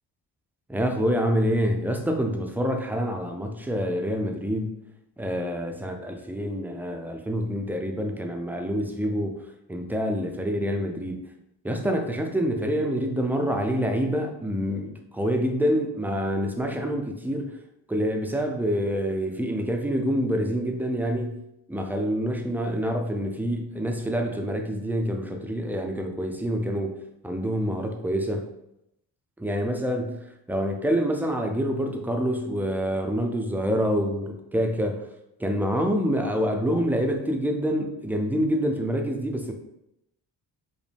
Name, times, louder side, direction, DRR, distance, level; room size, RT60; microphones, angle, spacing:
voice 1, 0.7-4.8 5.2-9.4 9.7-11.3 11.6-17.6 17.9-21.4 21.7-28.5 29.4-35.1 35.4-39.5, equal, 5° right, 3 dB, 0.5 m, -27 dB
5.1 x 2.1 x 3.4 m, 0.83 s
cardioid pair, 90°, 44 cm